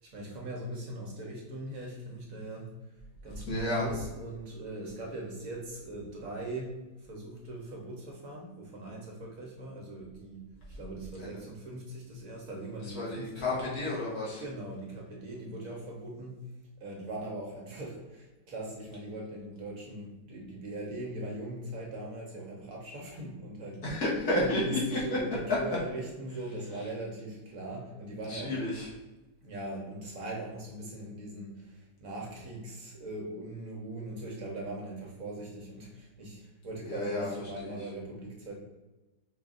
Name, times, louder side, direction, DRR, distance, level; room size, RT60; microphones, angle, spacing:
voice 1, 0.0-2.7 3.2-6.7 7.1-13.8 14.4-16.4 16.8-24.0 24.4-28.5 29.4-38.6, right 1 dB, 60° right, -1 dB, 1.2 m, -40 dB
voice 2, 3.5-3.9 11.2-11.4 12.8-14.4 23.8-25.2 28.3-28.9 36.9-37.3 37.6-37.7, left 1 dB, 65° left, -6 dB, 1.7 m, -31 dB
4.8 x 2.5 x 3.7 m, 1.1 s
omnidirectional pair, 1.7 m